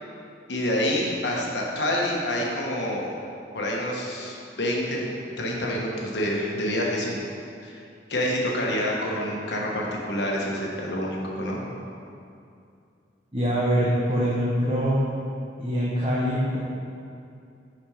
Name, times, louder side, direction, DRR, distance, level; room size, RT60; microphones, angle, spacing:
voice 1, 0.5-3.1 3.5-5.1 5.4-7.2 7.6-7.8 8.1-11.6, left 1 dB, 70° left, -2 dB, 1.2 m, -27 dB
voice 2, 13.3-15.0 15.6-16.6, equal, 30° right, -6 dB, 0.9 m, -24 dB
6.1 x 5.2 x 5.0 m, 2.5 s
head